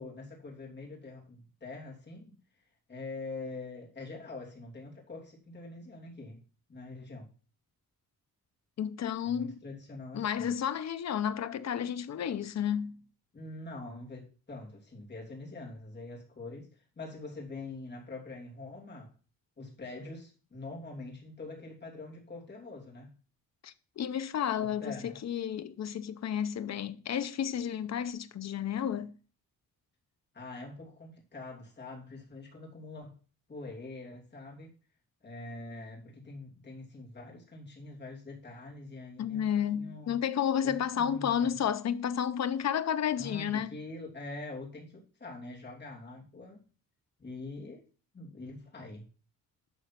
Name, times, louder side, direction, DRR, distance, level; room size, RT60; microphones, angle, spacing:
voice 1, 0.0-2.4 2.9-6.4 6.7-7.3 9.2-10.5 13.3-19.1 19.6-23.1 24.6-25.2 30.3-33.2 33.5-34.7 35.2-39.5 39.7-40.2 40.6-41.6 43.2-46.6 47.2-47.9 48.1-49.0, left 2 dB, 30° left, 3.0 m, -44 dB
voice 2, 8.8-9.6 10.1-13.0 23.6-29.1 39.2-43.8, left 9 dB, 50° left, 0.7 m, -31 dB
11.5 x 4.2 x 5.9 m
wide cardioid pair, 140°, 35 cm